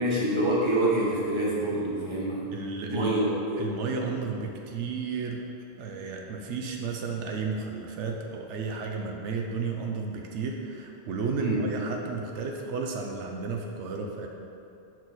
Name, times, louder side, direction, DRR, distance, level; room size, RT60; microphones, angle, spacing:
voice 1, 0.0-2.5 2.9-3.7 11.4-11.6, right 1 dB, 25° right, -5 dB, 1.1 m, -26 dB
voice 2, 2.5-3.3 3.6-5.4 5.8-14.3, right 4 dB, 85° right, 2 dB, 0.9 m, -33 dB
6.1 x 4.4 x 4.0 m, 2.7 s
omnidirectional pair, 1.2 m